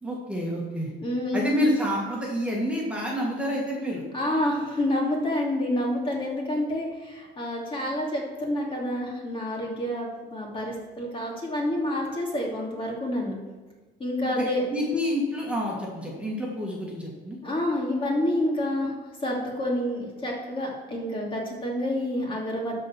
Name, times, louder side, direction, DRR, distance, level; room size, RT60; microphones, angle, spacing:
voice 1, 0.0-0.9 1.3-4.0 14.2-14.4 14.7-17.4, equal, 5° right, -3 dB, 2.0 m, -28 dB
voice 2, 1.0-1.5 4.1-13.3 14.0-14.7 17.4-18.9 19.2-22.8, left 1 dB, 30° left, -2 dB, 2.8 m, -28 dB
12.5 x 4.4 x 6.2 m, 1.2 s
cardioid pair, 110°, 17 cm